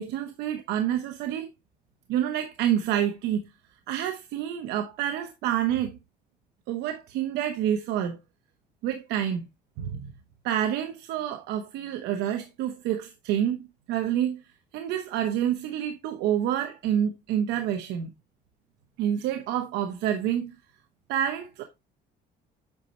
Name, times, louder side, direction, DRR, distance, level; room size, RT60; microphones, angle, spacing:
voice 1, 0.0-1.5 2.1-3.4 3.9-6.0 6.7-8.2 8.8-9.5 9.8-10.1 10.4-14.4 14.7-18.1 19.0-20.5 21.1-21.6, right 10 dB, 90° right, 0.9 m, -28 dB
8.1 x 5.3 x 2.9 m
cardioid pair, 110°, 17 cm